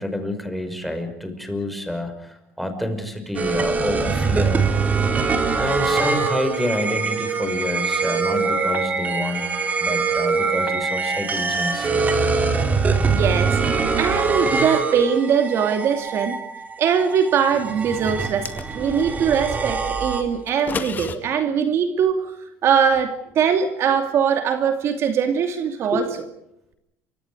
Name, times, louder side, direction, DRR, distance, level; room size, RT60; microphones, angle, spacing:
voice 1, 0.0-4.6 5.6-9.5 9.8-12.1 25.9-26.1, left 1 dB, ahead, 6 dB, 5.5 m, -28 dB
sound 1, 3.3-20.6, right 4 dB, 25° right, 3.9 m, -23 dB
voice 2, 13.1-13.6 14.0-16.4 16.8-22.3 22.6-26.1, right 7 dB, 50° right, 7 dB, 2.6 m, -21 dB
sound 2, 18.2-19.1 20.5-21.2, left 6 dB, 30° left, 2.2 m, -31 dB
29.0 x 25.0 x 4.9 m, 0.80 s
cardioid pair, 115°, 6 cm